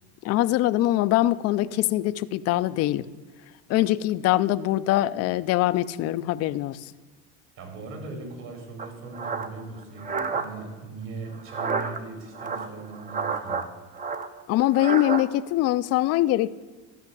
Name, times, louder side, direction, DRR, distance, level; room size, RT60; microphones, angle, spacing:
voice 1, 0.2-3.1 3.7-6.9 14.5-16.5, left 15 dB, 45° left, 16 dB, 0.5 m, -23 dB
voice 2, 7.6-13.7, right 3 dB, 60° right, 3 dB, 3.9 m, -39 dB
sound 1, 8.8-10.5 11.4-12.0 12.3-13.7 13.9-15.2, right 5 dB, 25° right, 0.7 m, -30 dB
12.5 x 5.6 x 8.4 m, 1.3 s
supercardioid pair, 115°, 34 cm